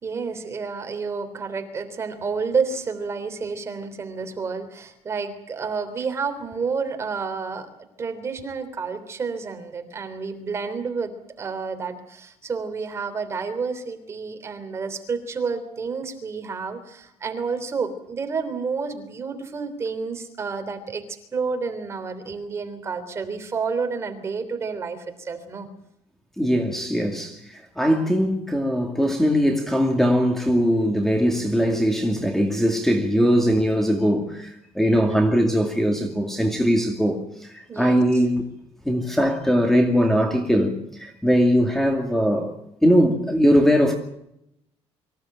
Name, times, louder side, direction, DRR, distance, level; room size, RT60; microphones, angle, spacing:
voice 1, 0.0-7.7 8.0-11.1 11.4-25.7 34.9-35.2 37.7-38.0, right 5 dB, 25° right, 3.3 m, -30 dB
voice 2, 26.4-38.5 38.9-42.5 42.8-43.9, equal, 5° left, 2.4 m, -21 dB
25.0 x 16.5 x 9.1 m
cardioid pair, 180°, 11 cm